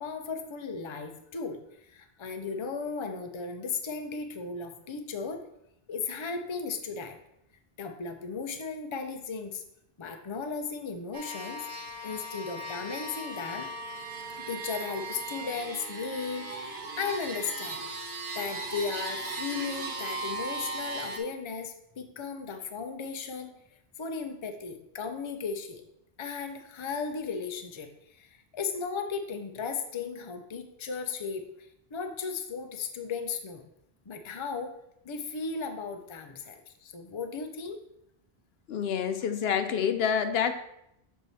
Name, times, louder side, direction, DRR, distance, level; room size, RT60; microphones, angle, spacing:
voice 1, 0.0-5.4 5.9-7.2 7.8-9.6 10.0-11.6 12.0-13.7 14.4-17.8 18.3-23.5 24.0-25.8 26.2-31.5 31.9-33.6 34.1-34.7 35.0-37.8, left 5 dB, 35° left, 6 dB, 0.6 m, -36 dB
sound 1, 11.1-21.2, right 2 dB, 80° right, 1.4 m, -37 dB
voice 2, 38.7-40.5, left 7 dB, 75° left, 8 dB, 0.8 m, -27 dB
7.3 x 4.7 x 4.1 m, 0.79 s
omnidirectional pair, 1.1 m